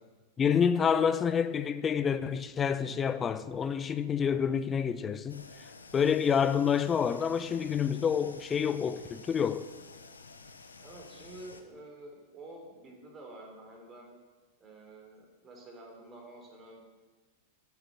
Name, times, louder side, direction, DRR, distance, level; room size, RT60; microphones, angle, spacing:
voice 1, 0.4-5.4 5.9-9.6, left 7 dB, 25° left, 0.6 m, -28 dB
sound 1, 5.3-11.6, left 4 dB, 80° left, 0.8 m, -51 dB
voice 2, 10.8-14.1 14.6-16.8, right 2 dB, 25° right, 3.5 m, -49 dB
8.3 x 8.1 x 7.6 m
figure-of-eight pair, 95°, 0 cm